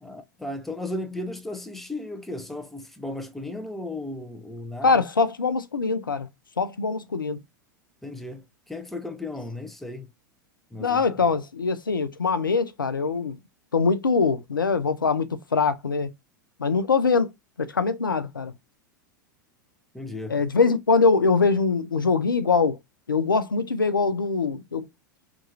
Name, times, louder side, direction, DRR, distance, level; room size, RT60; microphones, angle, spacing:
voice 1, 0.0-5.0 8.0-10.1 10.7-11.0 19.9-20.4, left 2 dB, ahead, 0.4 m, -35 dB
voice 2, 4.8-6.3 6.6-7.4 10.8-13.4 13.7-16.1 16.6-17.3 17.6-18.5 20.3-22.8 23.1-24.9, left 4 dB, 90° left, 0.4 m, -23 dB
2.9 x 2.3 x 2.7 m
figure-of-eight pair, 90°, 11 cm